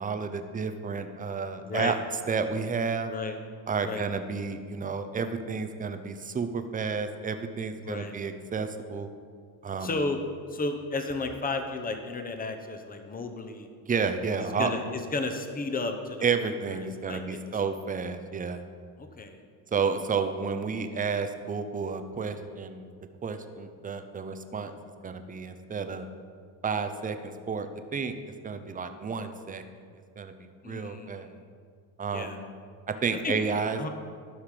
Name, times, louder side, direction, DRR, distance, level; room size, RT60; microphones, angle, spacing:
voice 1, 0.0-2.0 2.3-3.1 3.7-9.1 9.6-9.9 13.9-14.7 16.2-18.6 19.7-22.9 23.2-24.7 25.0-26.1 26.6-28.1 28.4-29.6 30.2-31.4 32.0-32.5 32.9-33.9, right 5 dB, 15° right, 8 dB, 0.6 m, -31 dB
voice 2, 1.6-2.0 3.1-3.4 3.8-4.0 7.8-8.2 9.8-10.2 10.5-13.7 14.4-17.4 19.0-19.4 30.6-31.4 32.0-32.4 33.2-33.4 33.8-33.9, left 3 dB, 20° left, 6 dB, 0.9 m, -33 dB
12.0 x 5.7 x 4.9 m, 2.1 s
supercardioid pair, 105°, 48 cm